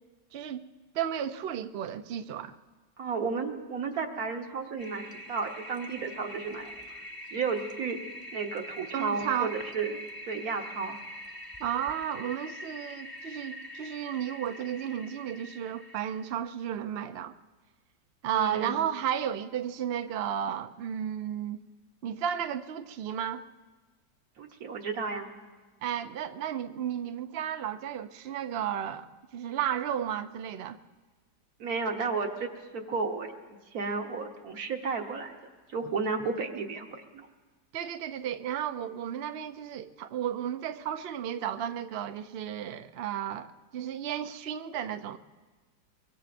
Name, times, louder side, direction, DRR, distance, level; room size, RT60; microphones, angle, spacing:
voice 1, 0.3-0.6 0.9-2.5 8.9-9.5 11.6-17.3 18.2-21.6 22.0-23.4 25.8-30.8 37.7-45.2, right 9 dB, 80° right, 0.5 m, -33 dB
voice 2, 3.0-6.7 7.3-8.0 8.3-10.0 10.3-11.0 18.3-18.7 24.4-25.3 31.6-35.3 35.7-37.3, right 4 dB, 60° right, 1.7 m, -33 dB
Toilet flush, 4.8-16.3, equal, 20° left, 0.6 m, -44 dB
24.0 x 23.5 x 2.6 m
omnidirectional pair, 1.8 m